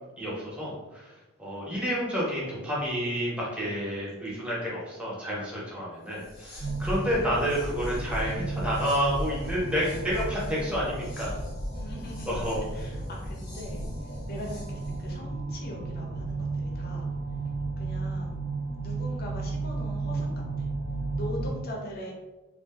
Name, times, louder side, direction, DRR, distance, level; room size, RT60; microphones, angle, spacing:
voice 1, 0.2-1.1 1.4-11.3 12.3-12.9, equal, 5° right, -6 dB, 0.7 m, -30 dB
sound 1, 6.1-15.2, equal, 85° left, 0.8 m, -38 dB
sound 2, 6.6-21.5, right 3 dB, 65° right, 0.7 m, -34 dB
voice 2, 11.7-12.4 12.7-13.8 14.3-17.1 17.8-18.4 18.8-20.7 21.1-22.1, left 1 dB, 45° left, -1 dB, 0.6 m, -41 dB
2.6 x 2.4 x 2.4 m, 1.1 s
head